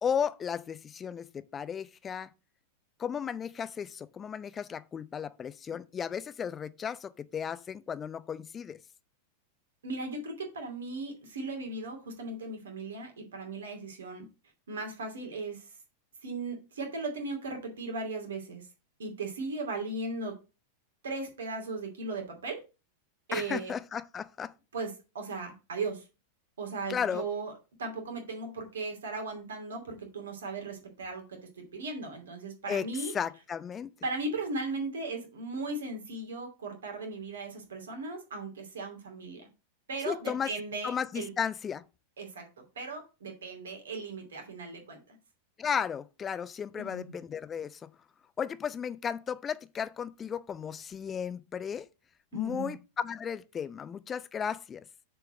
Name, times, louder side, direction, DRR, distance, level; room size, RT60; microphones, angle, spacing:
voice 1, 0.0-2.3 3.0-8.8 23.3-24.5 26.9-27.3 32.7-32.9 33.1-33.9 40.1-40.5 40.8-41.8 45.6-47.9 48.4-51.9 52.3-54.8, left 7 dB, 20° left, 0.5 m, -34 dB
voice 2, 9.8-14.3 14.7-15.7 16.2-18.7 19.0-20.3 21.0-22.6 23.3-23.7 24.7-26.0 26.6-27.5 27.8-31.4 31.7-33.1 34.0-39.5 39.9-41.3 42.2-42.4 42.8-45.2 46.8-47.0 52.3-52.7, right 3 dB, 65° right, 2.5 m, -37 dB
6.8 x 4.6 x 6.1 m
figure-of-eight pair, 90°, 0 cm